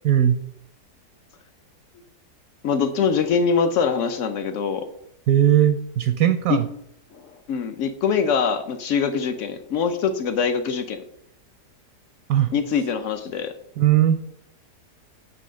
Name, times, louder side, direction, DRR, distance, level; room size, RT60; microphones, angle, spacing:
voice 1, 0.0-0.3 5.3-6.7 12.3-12.5 13.8-14.2, right 11 dB, 70° right, 10 dB, 0.8 m, -18 dB
voice 2, 2.6-4.9 6.5-6.6 7.1-11.0 12.5-13.5, left 6 dB, 65° left, 9 dB, 0.8 m, -23 dB
7.7 x 3.3 x 6.2 m, 0.75 s
omnidirectional pair, 1.8 m